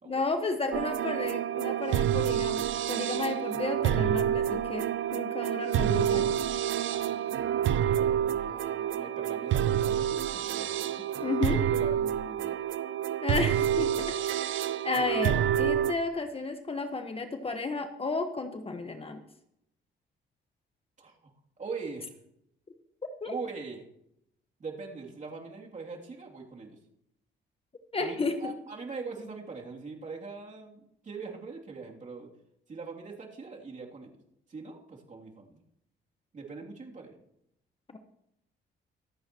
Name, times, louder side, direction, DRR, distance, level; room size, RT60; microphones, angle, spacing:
voice 1, 0.0-6.4 11.2-11.7 13.2-19.2 23.2-23.3 27.9-28.5 37.9-38.0, left 3 dB, 30° left, 7 dB, 1.3 m, -33 dB
sound 1, 0.7-15.9, right 10 dB, 75° right, 0.7 m, -28 dB
voice 2, 6.9-11.3 11.6-12.6 21.0-21.3 21.6-22.1 23.2-23.8 24.6-26.8 27.9-32.3 32.7-34.1 34.5-35.6 36.3-37.1, right 4 dB, 40° right, -1 dB, 2.9 m, -42 dB
24.5 x 8.6 x 3.0 m, 0.77 s
cardioid pair, 90°, 20 cm